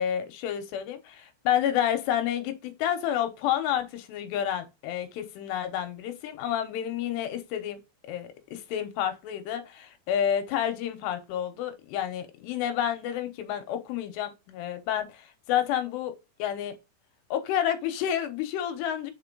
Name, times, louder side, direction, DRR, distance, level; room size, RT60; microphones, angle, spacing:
voice 1, 0.0-16.8 17.3-19.1, left 10 dB, 85° left, 2.9 m, -30 dB
5.6 x 4.5 x 3.8 m
omnidirectional pair, 5.0 m